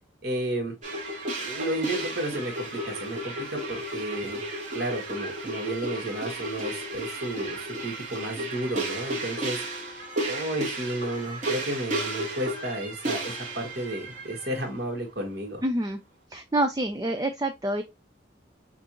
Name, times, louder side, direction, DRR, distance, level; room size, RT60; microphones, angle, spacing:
voice 1, 0.2-0.7 1.3-4.5 4.7-15.6, right 1 dB, 55° right, 1.8 m, -32 dB
sound 1, 0.8-14.7, right 1 dB, 40° right, 1.6 m, -33 dB
voice 2, 15.6-16.0 16.3-17.8, right 1 dB, 20° right, 0.4 m, -27 dB
5.8 x 2.6 x 2.9 m
head